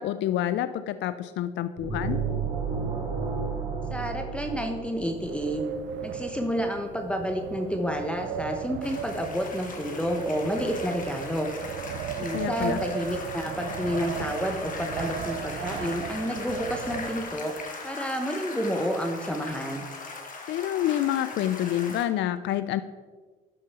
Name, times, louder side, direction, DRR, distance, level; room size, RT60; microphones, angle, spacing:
voice 1, 0.0-2.2 12.2-12.8 20.5-22.8, left 12 dB, 60° left, 13 dB, 0.5 m, -28 dB
sound 1, 1.8-5.6, right 5 dB, 45° right, 3.0 m, -31 dB
voice 2, 3.9-5.6 6.0-11.5 12.2-17.5 17.8-19.9, equal, 5° left, 2 dB, 1.0 m, -30 dB
Wind, 5.0-17.6, right 7 dB, 65° right, 0.7 m, -36 dB
sound 2, 8.8-22.1, left 3 dB, 40° left, 1.7 m, -39 dB
12.0 x 5.3 x 4.2 m, 1.4 s
supercardioid pair, 75°, 21 cm